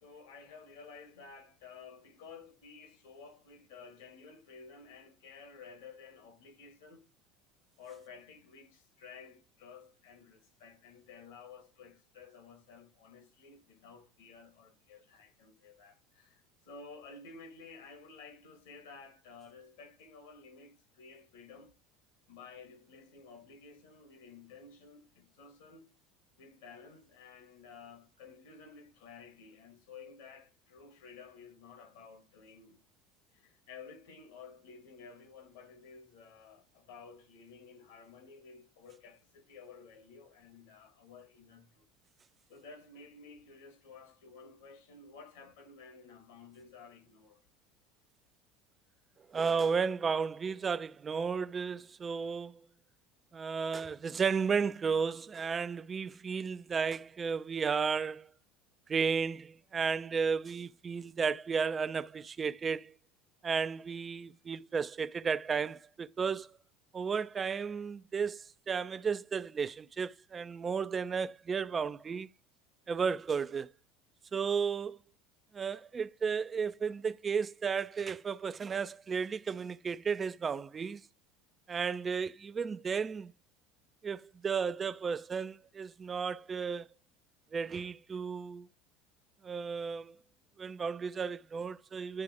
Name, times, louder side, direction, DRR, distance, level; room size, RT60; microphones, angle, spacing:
voice 1, 0.0-7.1 7.8-21.7 22.3-25.9 26.4-32.8 33.3-41.9 42.5-47.4, left 5 dB, 70° left, 1.9 m, -53 dB
voice 2, 49.3-52.6 53.3-58.3 58.9-62.9 63.4-66.5 66.9-72.3 72.9-73.7 74.3-75.0 75.5-81.0 81.7-83.3 84.0-86.9 87.5-88.7 89.4-90.2 90.6-92.2, right 6 dB, 30° right, 0.4 m, -33 dB
9.8 x 3.3 x 4.8 m
figure-of-eight pair, 70°, 0 cm